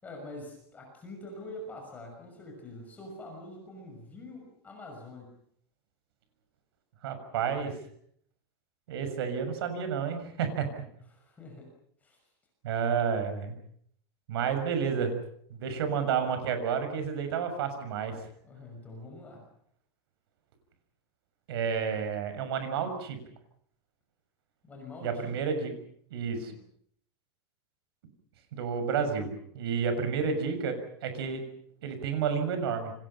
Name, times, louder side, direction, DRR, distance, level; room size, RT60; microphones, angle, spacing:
voice 1, 0.0-5.3 11.1-11.7 12.0-12.2 18.4-19.4 24.6-25.4, left 1 dB, 10° left, 2 dB, 6.0 m, -45 dB
voice 2, 7.0-7.8 8.9-10.7 12.6-13.5 14.3-15.2 15.5-18.2 21.5-23.2 25.0-25.8 26.1-26.5 28.5-31.4 31.8-32.9, right 6 dB, 65° right, 8 dB, 6.7 m, -30 dB
29.0 x 25.0 x 5.8 m, 0.65 s
supercardioid pair, 180°, 14 cm